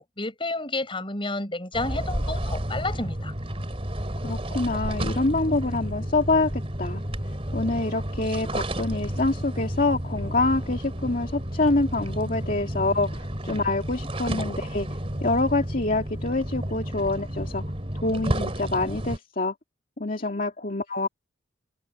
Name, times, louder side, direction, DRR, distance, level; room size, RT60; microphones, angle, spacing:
voice 1, 0.0-3.3, left 2 dB, 25° left, 7.5 m, -31 dB
sound 1, 1.7-19.2, equal, 30° right, 3.2 m, -31 dB
voice 2, 4.2-6.5 6.8-7.0 7.5-14.9 15.2-17.6 18.0-19.5 20.0-21.1, left 2 dB, 45° left, 2.5 m, -26 dB
head